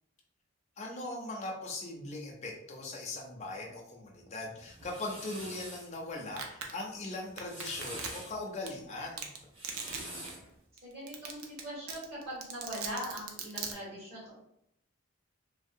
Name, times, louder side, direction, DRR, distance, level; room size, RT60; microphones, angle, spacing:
voice 1, 0.8-9.3, left 2 dB, 30° left, -1 dB, 0.4 m, -40 dB
sound 1, 4.6-5.9 7.3-8.3 9.4-10.5, right 1 dB, 25° right, 0.7 m, -44 dB
Domestic sounds home sounds, 6.4-6.7 7.4-8.3 8.7-8.8 9.2-9.4 9.6-10.0 10.3-10.4 10.8-10.9 11.1-11.6 11.9-13.7, right 6 dB, 90° right, 0.4 m, -38 dB
voice 2, 10.8-14.3, equal, 45° right, -7 dB, 1.5 m, -41 dB
2.6 x 2.0 x 2.5 m, 0.77 s
head